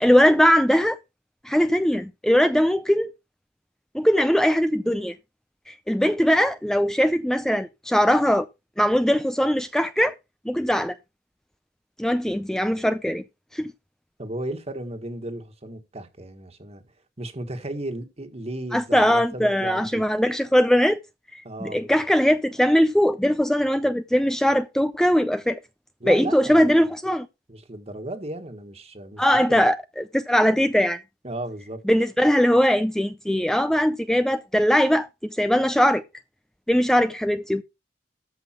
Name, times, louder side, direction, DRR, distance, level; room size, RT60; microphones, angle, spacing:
voice 1, 0.0-1.0 1.4-3.1 3.9-5.2 5.7-8.5 8.8-10.1 10.5-10.9 12.0-13.2 13.5-13.7 18.7-21.0 21.6-25.6 26.1-27.3 29.2-31.0 31.9-36.0 36.7-37.6, equal, 5° left, 0.5 m, -20 dB
voice 2, 14.2-16.8 17.2-20.0 21.4-21.9 26.0-26.9 27.5-29.6 31.2-31.8, right 1 dB, 35° right, 1.7 m, -35 dB
13.5 x 5.7 x 4.5 m
head